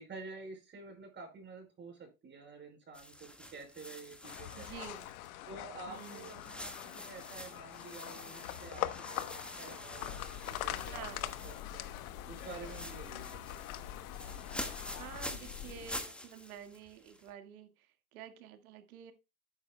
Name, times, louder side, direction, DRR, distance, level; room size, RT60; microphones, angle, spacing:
voice 1, 0.0-4.8 5.5-13.6, right 4 dB, 25° right, 5.0 m, -50 dB
sound 1, 2.9-5.5 5.9-11.9 12.1-17.3, left 1 dB, ahead, 1.6 m, -47 dB
sound 2, 4.2-15.2, left 15 dB, 70° left, 1.1 m, -43 dB
voice 2, 4.5-5.1 5.9-6.3 10.9-11.3 15.0-19.1, right 9 dB, 70° right, 1.9 m, -49 dB
sound 3, 10.0-16.0, left 9 dB, 50° left, 1.8 m, -47 dB
12.5 x 9.4 x 2.2 m
hypercardioid pair, 115°, 44 cm